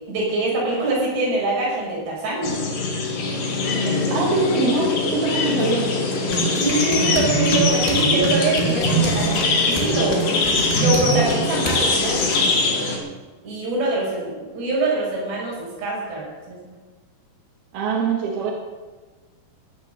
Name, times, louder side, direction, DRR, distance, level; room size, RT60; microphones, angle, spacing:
voice 1, 0.1-2.6 3.8-4.2 6.5-10.3 10.7-12.2 13.4-16.7, right 2 dB, 85° right, -4 dB, 8.0 m, -24 dB
sound 1, 2.4-13.0, left 3 dB, 55° left, 3.6 m, -23 dB
voice 2, 4.1-5.9 17.7-18.5, right 4 dB, 70° right, -2 dB, 3.6 m, -23 dB
Engine, 5.6-5.8 6.1-6.3 6.6-11.3 11.7-12.5, left 5 dB, 85° left, 4.2 m, -37 dB
sound 2, 6.3-11.9, right 4 dB, 20° left, 2.2 m, -25 dB
16.0 x 10.5 x 6.7 m, 1.3 s
omnidirectional pair, 4.8 m